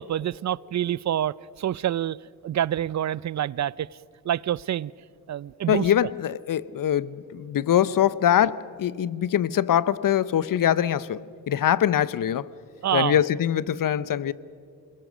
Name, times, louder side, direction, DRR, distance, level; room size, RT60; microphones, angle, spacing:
voice 1, 0.0-2.2 2.4-3.9 4.2-4.9 5.3-5.9 12.8-13.2, right 11 dB, 45° right, 0.5 m, -27 dB
voice 2, 5.7-12.5 12.9-14.3, left 10 dB, 55° left, 0.8 m, -23 dB
27.0 x 21.5 x 6.4 m
supercardioid pair, 50°, 39 cm